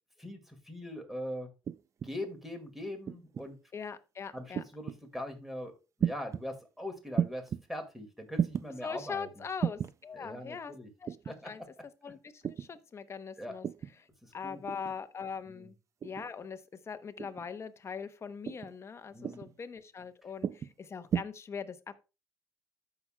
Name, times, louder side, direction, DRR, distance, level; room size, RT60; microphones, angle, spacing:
voice 1, 0.2-1.5 2.0-3.6 4.3-5.7 6.0-9.3 10.1-10.9 11.3-11.5 13.4-13.5 14.2-14.6 15.5-15.7 19.1-19.5, left 1 dB, 5° right, 2.0 m, -41 dB
sound 1, 1.7-2.1 3.1-3.5 4.5-5.0 6.0-6.4 7.2-7.6 8.3-8.7 9.6-10.0 11.1-11.4 12.4-12.7 13.6-14.0 14.7-15.0 16.0-16.3 17.2-17.5 18.4-18.8 19.2-19.5 20.4-20.7 21.1-21.2, right 8 dB, 40° right, 0.4 m, -33 dB
voice 2, 3.7-4.6 8.8-10.7 11.0-11.6 12.0-13.7 14.0-14.1 14.3-15.7 16.0-16.6 16.9-22.0, left 6 dB, 35° left, 0.8 m, -41 dB
14.0 x 5.8 x 2.2 m
cardioid pair, 110°, 8 cm